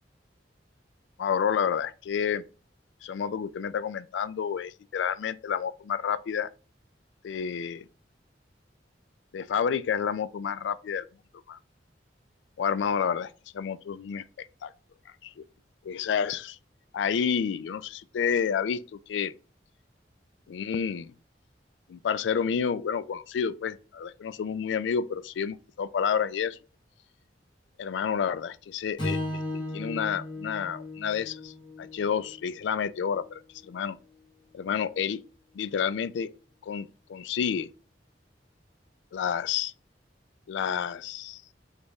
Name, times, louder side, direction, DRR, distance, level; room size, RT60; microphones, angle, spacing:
voice 1, 1.2-2.4 3.0-6.5 7.2-7.9 9.3-11.1 11.5-11.6 12.6-14.7 15.2-15.4 15.8-16.6 16.9-19.3 20.5-21.1 21.9-26.6 27.8-33.4 33.7-34.0 34.5-35.2 35.5-36.3 36.6-37.7 39.1-39.7 40.5-41.4, left 7 dB, 80° left, 0.3 m, -30 dB
Strum, 29.0-33.3, left 1 dB, 25° left, 1.4 m, -36 dB
4.3 x 3.3 x 3.5 m
head